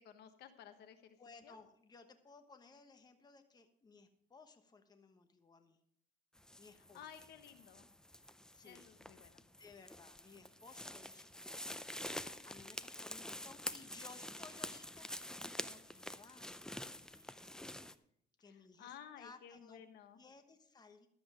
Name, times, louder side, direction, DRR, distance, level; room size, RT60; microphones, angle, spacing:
voice 1, 0.0-1.2 1.4-1.6 6.9-7.9 8.6-9.4 18.5-20.2, left 9 dB, 75° left, 9 dB, 1.1 m, -55 dB
voice 2, 1.2-5.8 6.6-7.1 8.5-8.9 9.6-11.7 12.0-15.1 15.4-17.5 18.4-19.8 20.2-21.1, left 4 dB, 25° left, 7 dB, 1.1 m, -60 dB
sound 1, 6.4-17.9, left 1 dB, 5° left, 0.5 m, -47 dB
12.0 x 7.8 x 4.9 m, 0.69 s
cardioid pair, 110°, 17 cm